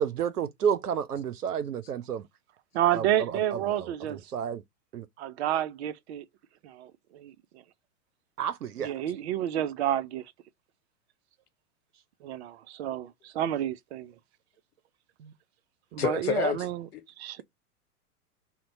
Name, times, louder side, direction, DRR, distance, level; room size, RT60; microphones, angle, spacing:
voice 1, 0.0-2.2 2.9-4.6 4.9-5.1 8.4-8.9 15.2-15.3, right 8 dB, 90° right, 0.6 m, -31 dB
voice 2, 2.7-4.2 5.2-6.2 6.6-7.6 8.8-10.3 12.2-14.1 15.9-16.9 17.2-17.4, right 11 dB, 50° right, 0.5 m, -30 dB
voice 3, 16.0-16.6 16.9-17.0, left 8 dB, 85° left, 1.0 m, -28 dB
2.9 x 2.1 x 4.0 m
hypercardioid pair, 110°, 45 cm